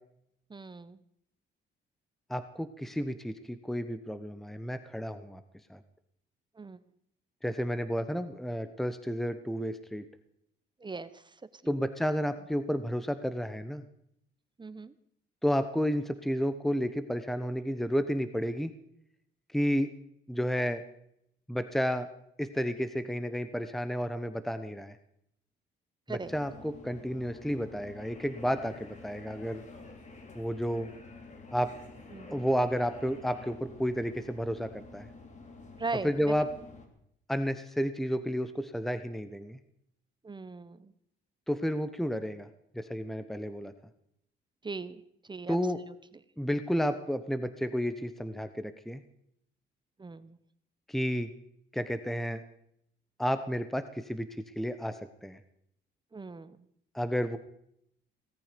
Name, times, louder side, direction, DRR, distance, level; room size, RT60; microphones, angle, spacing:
voice 1, 0.5-1.0 6.6-6.8 10.8-11.7 14.6-14.9 26.1-26.3 32.1-32.5 35.8-36.3 40.2-40.9 44.6-45.6 45.9-46.0 50.0-50.4 56.1-56.7, right 4 dB, 25° right, 14 dB, 1.0 m, -40 dB
voice 2, 2.3-5.4 5.7-5.8 7.4-10.0 11.7-13.8 15.4-18.7 19.5-19.9 20.3-20.8 21.5-22.1 22.4-25.0 26.1-29.6 30.3-30.9 31.5-31.7 32.3-35.1 36.0-36.5 37.3-39.6 41.5-42.5 42.7-43.7 45.5-45.8 46.4-49.0 50.9-51.3 51.7-52.4 53.2-55.4 56.9-57.4, equal, ahead, 11 dB, 1.0 m, -31 dB
sound 1, 26.2-36.9, left 3 dB, 35° left, 3.5 m, -49 dB
17.5 x 13.5 x 5.2 m, 0.73 s
cardioid pair, 90°, 20 cm